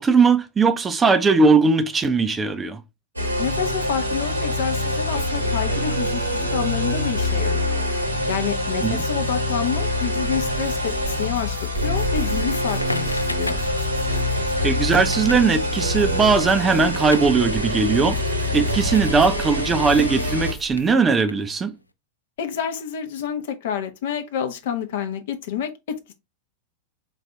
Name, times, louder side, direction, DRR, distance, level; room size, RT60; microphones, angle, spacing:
voice 1, 0.0-2.8 8.8-9.0 14.6-18.2 18.5-21.7, right 4 dB, 15° right, 0.4 m, -19 dB
sound 1, 3.2-20.5, left 1 dB, 80° right, 1.0 m, -25 dB
voice 2, 3.4-7.8 8.3-13.6 22.4-26.1, left 8 dB, 55° left, 0.7 m, -28 dB
sound 2, 10.1-21.0, right 4 dB, 20° left, 1.0 m, -37 dB
Crackle, 12.4-19.1 19.4-21.8, left 2 dB, 85° left, 0.3 m, -37 dB
3.9 x 2.6 x 3.2 m
figure-of-eight pair, 90°, 0 cm